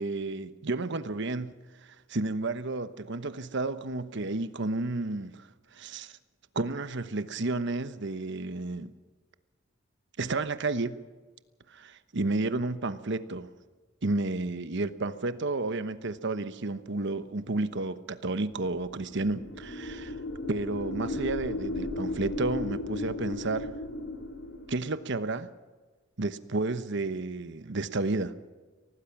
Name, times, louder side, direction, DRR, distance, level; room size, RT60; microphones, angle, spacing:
voice 1, 0.0-1.5 2.1-6.1 6.5-8.9 10.2-11.0 11.7-13.5 14.0-20.2 20.5-23.7 24.7-25.5 26.2-28.3, right 2 dB, 60° right, 12 dB, 1.1 m, -31 dB
sound 1, 18.8-24.9, left 2 dB, 85° left, 3.8 m, -36 dB
24.5 x 18.0 x 6.0 m, 1.4 s
head